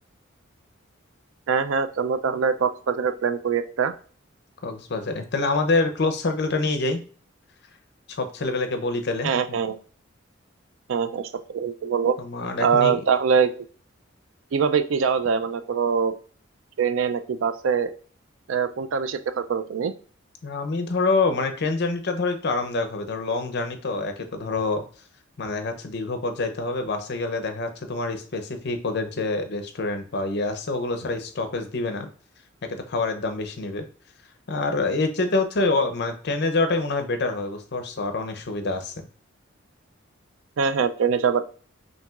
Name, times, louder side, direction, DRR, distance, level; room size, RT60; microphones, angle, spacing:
voice 1, 1.5-3.9 9.2-9.8 10.9-12.2 12.6-13.6 14.5-16.1 16.8-17.9 18.5-19.9 40.6-41.4, right 6 dB, 80° right, 11 dB, 0.4 m, -23 dB
voice 2, 4.6-7.0 8.1-9.6 12.2-13.0 20.4-24.8 25.4-32.1 32.7-33.9 34.5-39.1, left 3 dB, 55° left, 8 dB, 0.6 m, -26 dB
5.8 x 2.7 x 2.4 m, 0.42 s
head